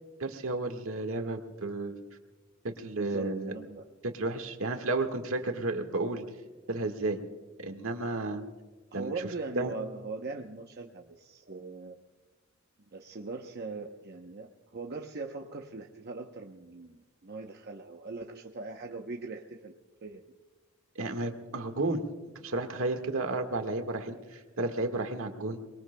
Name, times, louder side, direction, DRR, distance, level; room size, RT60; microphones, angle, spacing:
voice 1, 0.2-1.9 2.6-3.5 4.0-6.2 6.7-7.2 7.6-8.4 8.9-9.1 9.5-9.7 20.9-22.0 22.4-25.6, right 2 dB, 75° right, 5 dB, 1.6 m, -32 dB
voice 2, 3.0-3.8 8.9-11.9 12.9-19.7 20.0-20.2, right 3 dB, 50° right, 2 dB, 0.8 m, -40 dB
23.5 x 22.0 x 2.2 m, 1.3 s
head